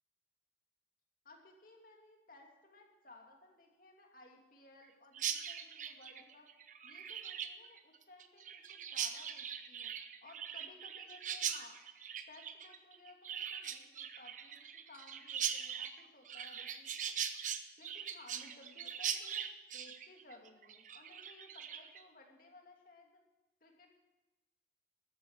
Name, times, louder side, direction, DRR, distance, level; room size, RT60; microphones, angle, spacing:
voice 1, 1.2-6.5 6.8-9.9 10.2-11.8 12.3-17.1 17.8-19.4 19.7-23.2 23.6-23.9, left 2 dB, 50° left, 1 dB, 2.7 m, -59 dB
Chirp tweet, 5.1-22.0, right 8 dB, 45° right, 0.8 m, -41 dB
13.5 x 13.0 x 4.8 m, 1.1 s
head